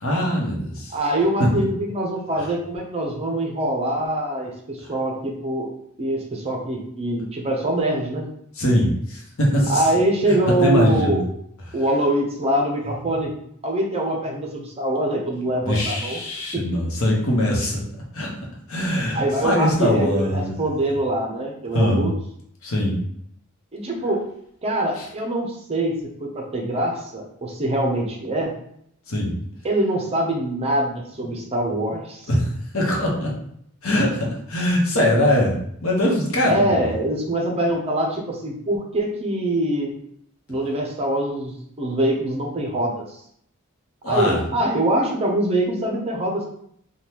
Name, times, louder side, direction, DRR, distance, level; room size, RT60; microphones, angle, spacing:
voice 1, 0.0-0.9 1.4-1.5 2.4-2.5 4.8-4.9 8.5-9.9 10.5-11.2 13.1-13.2 15.6-17.8 18.1-18.3 18.7-20.6 21.7-22.1 22.6-23.0 25.0-25.1 29.1-29.3 32.3-33.3 33.8-36.8 44.0-44.4, equal, 65° left, -2 dB, 0.9 m, -22 dB
voice 2, 0.9-5.7 6.0-8.3 9.7-11.2 11.7-13.3 13.6-16.2 16.5-16.6 19.1-22.1 23.7-24.2 24.6-28.5 29.6-32.3 36.4-39.9 40.5-43.2 44.1-46.4, right 1 dB, 25° right, 0 dB, 0.5 m, -24 dB
3.4 x 2.2 x 2.8 m, 0.69 s
head